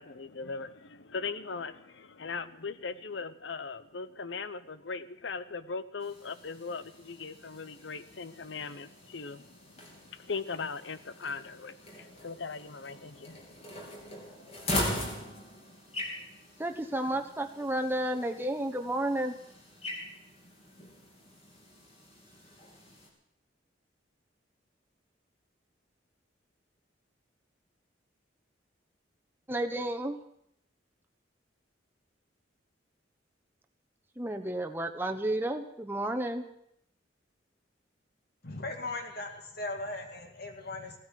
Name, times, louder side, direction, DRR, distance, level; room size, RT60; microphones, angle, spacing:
voice 1, 0.0-15.0, left 4 dB, 80° left, 14 dB, 0.8 m, -40 dB
sound 1, 6.0-23.1, left 1 dB, 35° left, 3.3 m, -41 dB
voice 2, 16.6-19.4 29.5-30.2 34.1-36.5, right 1 dB, 10° right, 5 dB, 1.0 m, -32 dB
voice 3, 38.4-41.0, left 2 dB, 60° left, 4 dB, 2.2 m, -38 dB
16.5 x 9.5 x 7.6 m, 0.75 s
head